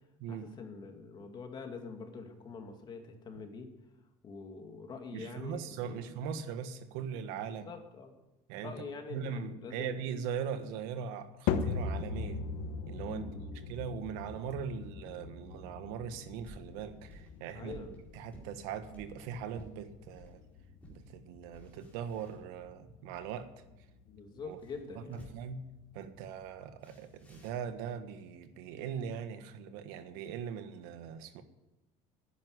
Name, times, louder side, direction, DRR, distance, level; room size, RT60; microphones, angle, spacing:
voice 1, 0.3-3.7 4.2-6.0 7.5-8.1 8.6-9.9 13.0-13.6 17.5-18.0 24.1-25.3, left 4 dB, 30° left, 4 dB, 2.3 m, -45 dB
voice 2, 5.1-7.7 8.5-8.7 9.1-12.4 12.9-13.2 13.7-17.8 18.1-20.4 20.9-23.5 24.4-24.6 24.9-25.6 25.9-31.4, right 7 dB, 90° right, 10 dB, 1.5 m, -40 dB
sound 1, 11.5-27.9, left 5 dB, 75° left, 1.1 m, -41 dB
sound 2, 15.9-20.4 20.8-21.0 21.4-22.9 24.4-25.6 26.8-27.7, equal, 10° left, 4.3 m, -56 dB
11.5 x 10.0 x 9.8 m, 1.0 s
cardioid pair, 145°, 14 cm